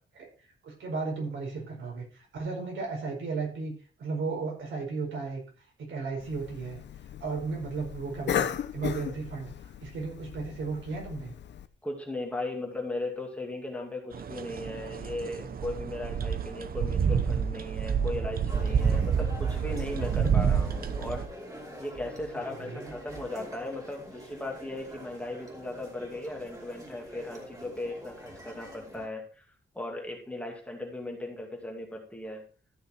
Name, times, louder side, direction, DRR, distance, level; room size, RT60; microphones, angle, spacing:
voice 1, 0.6-3.7 4.0-5.4 5.8-6.9 7.2-8.5 8.7-11.3 22.3-22.9, right 4 dB, 90° right, 0 dB, 5.1 m, -35 dB
Cough, 6.2-11.7, left 9 dB, 65° left, 0.8 m, -36 dB
voice 2, 11.8-21.2 21.8-29.4 29.7-32.4, left 2 dB, 5° left, 0 dB, 2.5 m, -37 dB
sound 1, 14.1-21.3, right 7 dB, 50° right, 0.8 m, -28 dB
sound 2, 18.5-29.1, equal, 20° right, 3.0 m, -45 dB
13.5 x 6.4 x 4.4 m, 0.38 s
wide cardioid pair, 165°, 20 cm